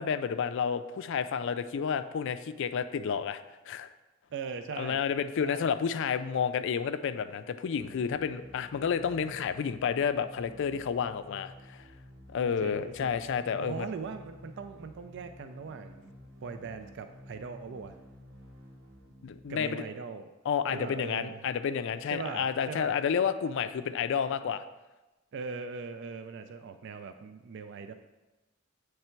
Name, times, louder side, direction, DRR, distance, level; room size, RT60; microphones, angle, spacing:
voice 1, 0.0-3.4 3.7-3.9 4.8-11.8 12.3-13.9 19.2-19.8 20.5-24.6, left 7 dB, 65° left, 12 dB, 0.3 m, -30 dB
voice 2, 4.3-5.0 5.4-5.7 12.6-13.3 13.6-16.1 16.4-18.0 19.5-20.3 20.7-21.4 22.1-23.0 25.3-27.9, right 5 dB, 60° right, 8 dB, 0.4 m, -40 dB
sound 1, 7.8-19.7, left 1 dB, 80° right, 1.6 m, -51 dB
7.9 x 3.3 x 4.4 m, 1.1 s
head